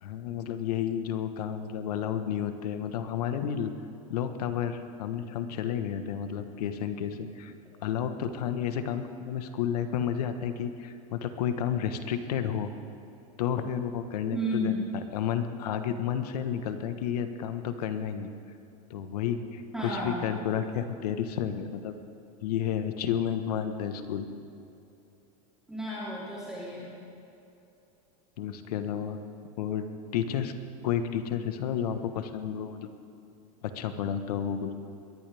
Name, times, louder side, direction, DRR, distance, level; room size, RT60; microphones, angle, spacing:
voice 1, 0.0-3.7 4.1-7.5 7.8-12.7 13.4-14.7 15.1-18.3 18.9-21.9 22.4-24.3 28.4-29.2 29.6-29.9 30.1-30.5 30.8-32.9 33.6-34.7, left 9 dB, 85° left, 8 dB, 1.3 m, -31 dB
voice 2, 14.3-14.8 19.7-20.2 25.7-26.9, right 1 dB, 5° right, -9 dB, 3.6 m, -32 dB
22.0 x 18.0 x 3.5 m, 2.8 s
supercardioid pair, 145°, 19 cm